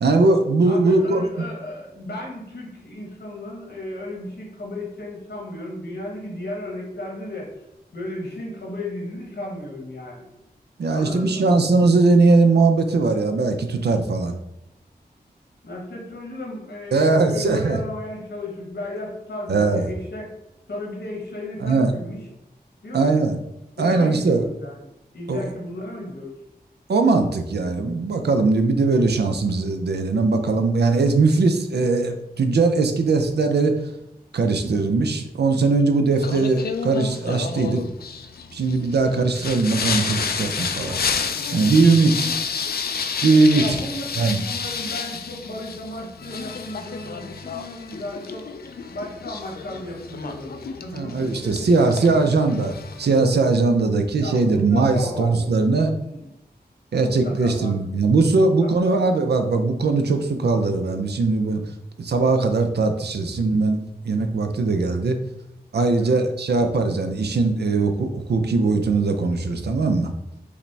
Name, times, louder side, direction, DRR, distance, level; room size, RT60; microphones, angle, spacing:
voice 1, 0.0-1.4 10.8-14.4 16.9-17.8 19.5-19.9 21.6-21.9 22.9-23.4 23.8-24.5 25.3-25.5 26.9-33.7 34.3-37.8 38.5-41.0 41.5-42.3 43.2-43.8 44.2-44.4 50.9-55.9 56.9-61.6 62.0-65.2 65.7-70.1, right 3 dB, 80° right, 6 dB, 0.5 m, -20 dB
voice 2, 0.6-7.5 7.9-10.2 10.9-11.4 15.6-20.2 20.7-22.2 22.8-23.1 23.7-24.8 25.1-26.3 41.9-42.7 43.5-48.5 48.9-52.1 54.2-56.3 57.0-57.8 58.4-59.1 66.0-66.2, left 1 dB, 85° left, -2 dB, 1.2 m, -35 dB
Singing, 36.2-53.2, left 6 dB, 65° left, 0.4 m, -30 dB
4.9 x 2.1 x 3.3 m, 0.89 s
wide cardioid pair, 50°, 17 cm